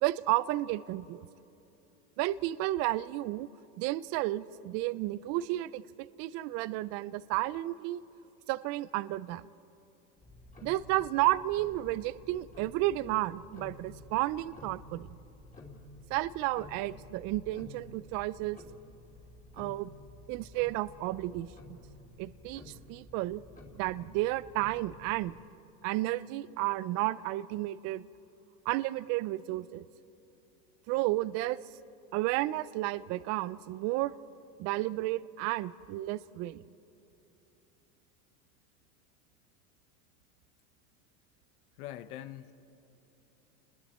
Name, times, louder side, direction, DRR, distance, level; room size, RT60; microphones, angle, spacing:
voice 1, 0.0-1.3 2.2-3.5 3.8-5.8 6.2-8.0 8.5-9.5 10.6-15.1 16.1-18.6 19.6-19.9 20.3-21.8 22.2-23.4 23.7-25.3 25.8-28.0 28.7-29.9 30.9-31.6 32.1-34.1 34.6-36.6, right 17 dB, 40° right, 18 dB, 0.4 m, -32 dB
Tick-tock, 10.2-25.4, left 2 dB, 15° left, 2.7 m, -52 dB
voice 2, 41.8-42.5, left 12 dB, 75° left, 12 dB, 1.0 m, -43 dB
30.0 x 21.0 x 4.3 m, 2.9 s
supercardioid pair, 120°, 45 cm